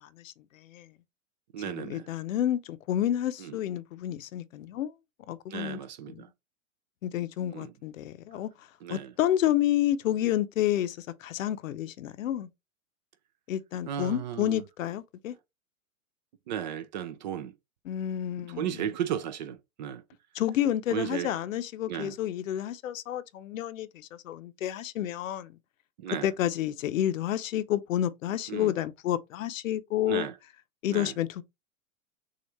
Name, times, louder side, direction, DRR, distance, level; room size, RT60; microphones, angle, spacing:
voice 1, 0.0-0.9 1.7-4.9 5.3-5.8 6.1-6.2 7.0-8.5 8.9-12.5 13.5-15.3 17.9-18.9 20.3-25.5 26.2-30.3 30.8-31.4, left 12 dB, 65° left, 0.7 m, -30 dB
voice 2, 1.5-2.1 3.4-3.6 5.5-6.3 7.5-7.7 8.3-8.4 8.8-9.1 13.9-14.6 16.5-17.5 18.5-20.0 20.9-21.3 21.9-22.2 26.0-26.3 28.5-28.7 30.1-30.4 30.9-31.1, right 10 dB, 35° right, 0.4 m, -35 dB
6.5 x 2.5 x 3.0 m
hypercardioid pair, 125°, 42 cm